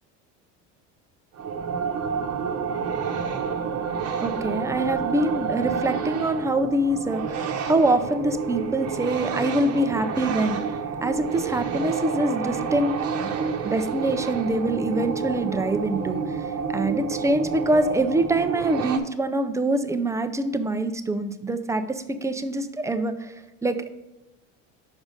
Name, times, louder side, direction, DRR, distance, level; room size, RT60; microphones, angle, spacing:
sound 1, 1.4-19.0, right 6 dB, 45° right, 0.9 m, -29 dB
voice 1, 4.2-10.6 11.0-12.9 13.2-13.3 13.6-23.3 23.6-23.9, right 1 dB, 10° right, 9 dB, 0.3 m, -25 dB
6.2 x 4.9 x 3.9 m, 0.99 s
supercardioid pair, 115°, 35 cm